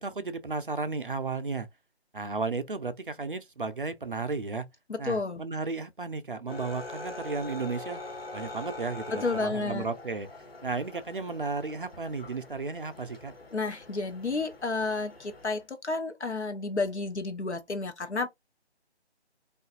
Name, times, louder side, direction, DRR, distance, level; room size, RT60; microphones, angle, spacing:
voice 1, 0.0-1.7 2.1-4.7 5.0-8.0 8.3-10.3 10.6-13.3, right 4 dB, 50° right, 0.4 m, -34 dB
voice 2, 4.9-5.4 9.1-9.9 13.5-18.3, left 3 dB, 80° left, 0.8 m, -31 dB
sound 1, 6.5-15.6, left 2 dB, 60° left, 1.2 m, -44 dB
2.6 x 2.4 x 2.3 m
figure-of-eight pair, 155°, 34 cm